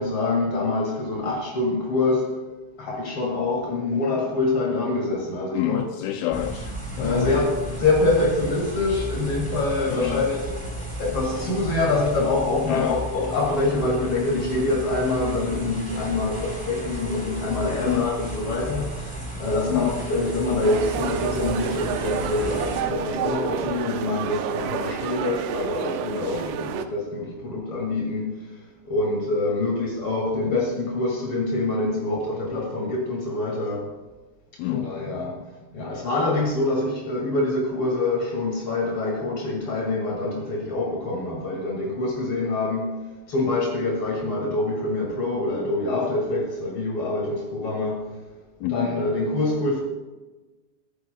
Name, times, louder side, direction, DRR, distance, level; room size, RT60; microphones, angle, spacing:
voice 1, 0.0-2.4 2.8-5.8 7.0-10.5 11.0-28.6 28.8-33.9 34.7-35.4 35.7-43.0 43.3-48.1 48.6-49.8, left 2 dB, 60° left, 1.4 m, -25 dB
voice 2, 5.5-7.3 9.9-10.3 12.7-13.0 17.8-18.1 19.7-20.0 34.6-34.9 48.6-48.7, left 13 dB, 85° left, 2.7 m, -27 dB
sound 1, 6.3-22.8, right 1 dB, 5° left, 1.7 m, -34 dB
sound 2, 20.6-26.9, right 9 dB, 90° right, 3.5 m, -30 dB
16.5 x 14.5 x 2.2 m
omnidirectional pair, 5.9 m